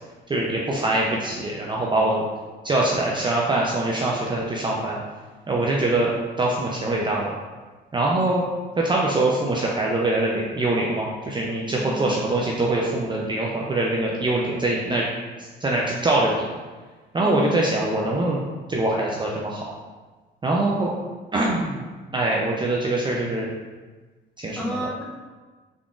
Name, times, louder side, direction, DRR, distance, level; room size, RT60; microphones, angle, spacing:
voice 1, 0.3-2.2 2.6-5.0 5.5-6.1 6.4-7.3 7.9-8.4 8.8-15.0 15.6-16.4 17.1-18.4 18.7-19.6 20.4-20.9 21.3-21.8 22.1-23.5 24.4-24.9, right 2 dB, 25° right, -3 dB, 0.5 m, -23 dB
voice 2, 11.8-12.2 17.1-17.7 24.6-25.0, left 1 dB, 5° left, -3 dB, 0.8 m, -31 dB
3.8 x 3.5 x 2.4 m, 1.3 s
cardioid pair, 90°, 20 cm